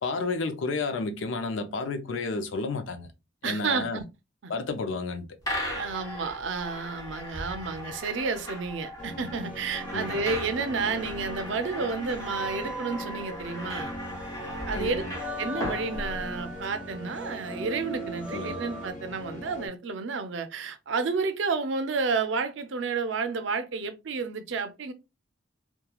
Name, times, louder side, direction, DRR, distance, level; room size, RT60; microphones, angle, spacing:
voice 1, 0.0-3.1 3.4-4.0 4.5-5.4 9.9-10.2 14.8-15.1 18.3-18.6, left 3 dB, 80° left, 0.5 m, -31 dB
voice 2, 3.4-4.0 4.4-4.5 5.7-13.9 14.7-15.0 15.4-24.9, right 4 dB, 75° right, 0.5 m, -31 dB
sound 1, 5.4-16.7, equal, 20° left, 1.0 m, -38 dB
sound 2, 9.0-19.7, left 1 dB, 40° left, 0.7 m, -41 dB
sound 3, 9.4-18.9, right 1 dB, 5° right, 0.4 m, -41 dB
2.9 x 2.2 x 2.2 m
head